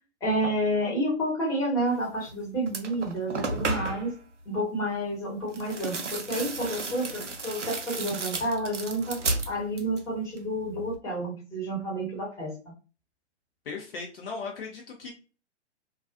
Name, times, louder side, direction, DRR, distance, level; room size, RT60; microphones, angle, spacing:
voice 1, 0.2-4.1 4.4-7.1 7.4-9.2 9.5-12.5, right 1 dB, 10° left, -5 dB, 1.1 m, -29 dB
sound 1, 2.2-2.3 2.7-4.1 5.5-10.1 10.4-11.0, right 3 dB, 85° right, 0.6 m, -33 dB
voice 2, 13.7-15.1, left 4 dB, 55° left, 0 dB, 0.6 m, -37 dB
2.4 x 2.3 x 2.5 m, 0.35 s
figure-of-eight pair, 120°, 35 cm